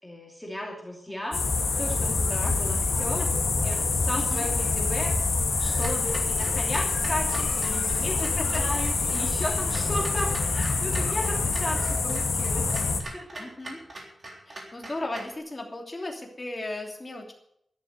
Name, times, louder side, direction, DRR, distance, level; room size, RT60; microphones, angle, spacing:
voice 1, 0.0-1.5 1.8-3.3 3.6-5.3 5.6-12.8 13.1-13.5, left 1 dB, 5° left, -2 dB, 2.8 m, -35 dB
sound 1, 1.3-13.0, left 4 dB, 55° left, 2.0 m, -26 dB
voice 2, 4.1-4.4 8.2-8.6 11.3-11.5 13.4-13.8 14.5-17.3, left 2 dB, 20° left, 1 dB, 3.0 m, -36 dB
Clock, 5.8-15.4, right 1 dB, 40° right, 3.7 m, -43 dB
sound 2, 8.6-9.9 10.9-11.0, right 3 dB, 90° right, 3.6 m, -48 dB
13.0 x 11.0 x 6.7 m, 0.71 s
wide cardioid pair, 165°, 0 cm